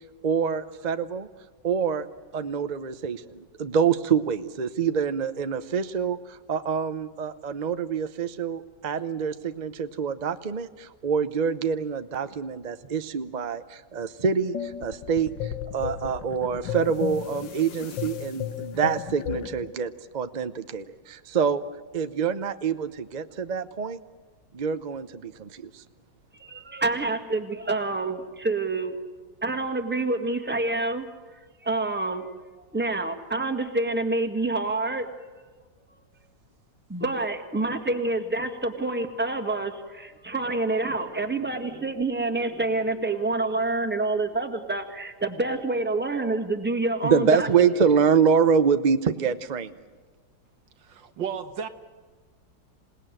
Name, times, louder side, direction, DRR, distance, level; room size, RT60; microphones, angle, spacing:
voice 1, 0.2-1.3 1.6-2.1 2.3-21.6 21.9-24.0 24.5-25.8 47.0-49.8, right 6 dB, 50° right, 10 dB, 0.5 m, -26 dB
sound 1, 14.5-19.7, left 10 dB, 85° left, 1.7 m, -34 dB
voice 2, 26.4-29.0 29.4-31.1 31.6-32.2 32.7-35.1 36.9-47.5, right 2 dB, 5° right, 5 dB, 1.6 m, -27 dB
voice 3, 50.8-51.7, right 7 dB, 85° right, 8 dB, 2.0 m, -33 dB
27.0 x 18.5 x 9.1 m, 1.3 s
omnidirectional pair, 2.0 m